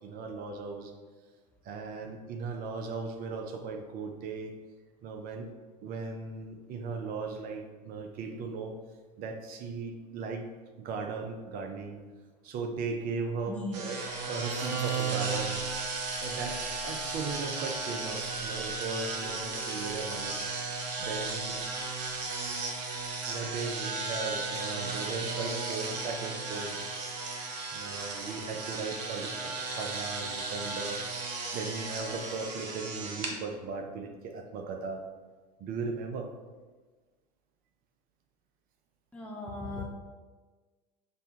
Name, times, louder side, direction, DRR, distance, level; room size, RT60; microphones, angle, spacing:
voice 1, 0.0-0.9 1.6-4.6 5.0-5.5 5.8-8.8 9.2-10.5 10.8-12.0 12.4-14.0 14.3-15.6 16.2-20.4 21.0-21.6 23.3-27.0 27.7-31.0 31.5-35.0 35.6-36.3, right 4 dB, 45° right, 5 dB, 0.6 m, -37 dB
voice 2, 13.5-13.8 39.1-39.8, left 1 dB, 5° left, -1 dB, 0.6 m, -37 dB
sound 1, 13.7-33.3, right 3 dB, 75° right, 0.7 m, -35 dB
5.3 x 2.3 x 2.9 m, 1.3 s
hypercardioid pair, 90°, 21 cm